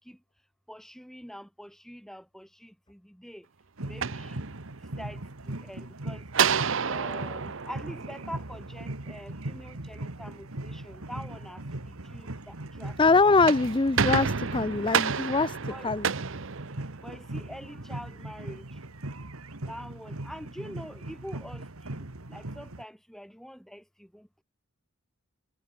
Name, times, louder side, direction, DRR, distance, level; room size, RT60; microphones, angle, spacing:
voice 1, 0.7-3.5 3.8-4.5 5.0-6.2 6.8-13.0 13.2-13.5 15.7-15.9 17.0-18.7 19.6-21.6 21.9-24.3, equal, ahead, 5.6 m, -45 dB
sound 1, 3.8-5.0 6.3-8.8 13.2-17.3, right 6 dB, 60° right, 0.8 m, -30 dB
sound 2, 3.8-22.8, right 1 dB, 90° right, 2.0 m, -40 dB
voice 2, 13.0-16.1, left 3 dB, 25° left, 0.5 m, -23 dB
head